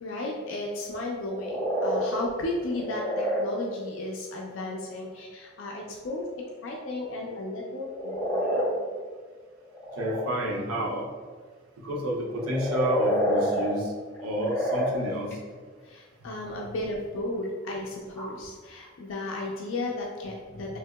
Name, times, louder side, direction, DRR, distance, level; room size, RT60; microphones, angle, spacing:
voice 1, 0.0-8.8 15.8-20.8, left 2 dB, 65° left, -1 dB, 0.4 m, -34 dB
sound 1, 1.2-2.0 2.6-3.4 7.8-8.6 9.6-10.3 12.2-13.7 14.1-14.9 15.3-15.4 17.4-17.5 17.8-18.2, equal, 10° left, 1.0 m, -27 dB
voice 2, 10.0-11.1 11.8-13.9 14.2-15.3, right 1 dB, 90° right, -1 dB, 0.6 m, -30 dB
3.4 x 2.8 x 2.2 m, 1.5 s
head